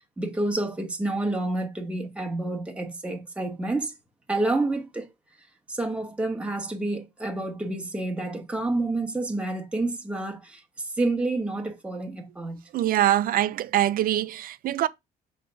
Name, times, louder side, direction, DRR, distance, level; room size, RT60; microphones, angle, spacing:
voice 1, 0.2-3.9 4.3-5.1 5.7-10.6 11.0-12.6, right 2 dB, 5° right, 1.1 m, -29 dB
voice 2, 12.7-14.9, right 13 dB, 60° right, 0.5 m, -23 dB
5.4 x 3.3 x 5.4 m
cardioid pair, 110°, 17 cm